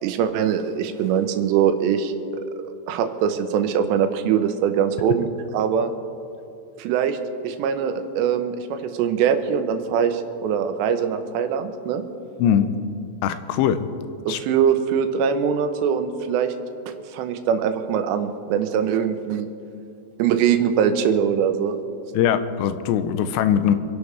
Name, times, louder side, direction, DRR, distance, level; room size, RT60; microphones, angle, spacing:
voice 1, 0.0-2.1 2.6-5.9 6.8-7.2 7.4-12.0 14.3-16.5 16.9-19.5 20.2-21.8, right 8 dB, 90° right, 8 dB, 3.0 m, -22 dB
voice 2, 13.2-13.9 14.3-14.4 22.1-23.8, left 9 dB, 90° left, 11 dB, 2.8 m, -21 dB
26.5 x 11.5 x 3.4 m, 2.6 s
omnidirectional pair, 5.0 m